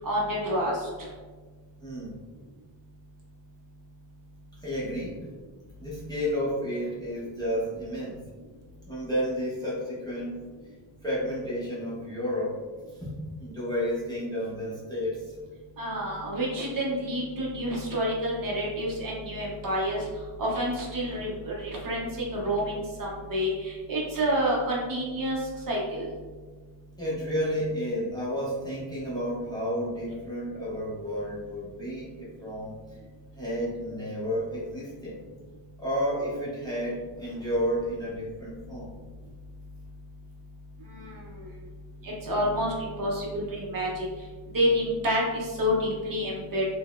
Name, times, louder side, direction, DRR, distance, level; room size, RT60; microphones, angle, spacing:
voice 1, 0.0-1.1 15.8-20.1 20.4-26.1 40.9-41.5 42.0-44.1 44.5-46.7, equal, 45° right, -3 dB, 0.6 m, -29 dB
voice 2, 1.8-2.1 4.6-5.3 5.8-8.2 8.9-10.5 11.0-12.6 13.0-15.3 27.0-32.8 33.4-35.2 35.8-38.9, equal, 10° left, -8 dB, 0.5 m, -31 dB
3.7 x 2.0 x 2.3 m, 1.4 s
wide cardioid pair, 170°, 47 cm